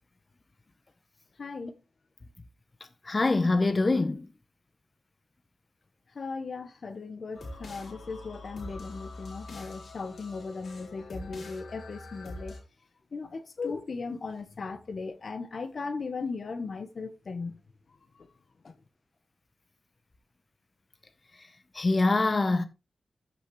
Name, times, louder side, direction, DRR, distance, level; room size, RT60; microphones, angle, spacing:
voice 1, 1.4-1.8 6.1-12.5 13.1-17.6 18.6-18.7, left 4 dB, 60° left, 1.2 m, -37 dB
voice 2, 3.1-4.3 21.7-22.6, left 3 dB, 35° left, 0.9 m, -24 dB
sound 1, 7.3-12.6, left 2 dB, 75° left, 3.7 m, -44 dB
13.5 x 6.2 x 3.2 m
wide cardioid pair, 100°, 0 cm